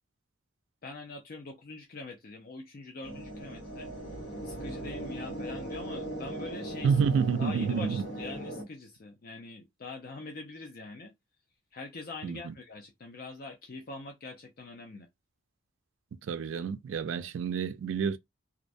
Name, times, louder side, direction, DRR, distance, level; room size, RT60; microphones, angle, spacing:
voice 1, 0.8-3.9 4.4-6.9 7.4-11.1 11.7-15.1, left 3 dB, 45° left, 0.4 m, -43 dB
sound 1, 3.0-8.6, right 1 dB, 70° left, 1.2 m, -39 dB
voice 2, 6.8-8.0 12.2-12.5 16.2-18.2, right 6 dB, 70° right, 0.3 m, -29 dB
2.4 x 2.1 x 2.5 m
head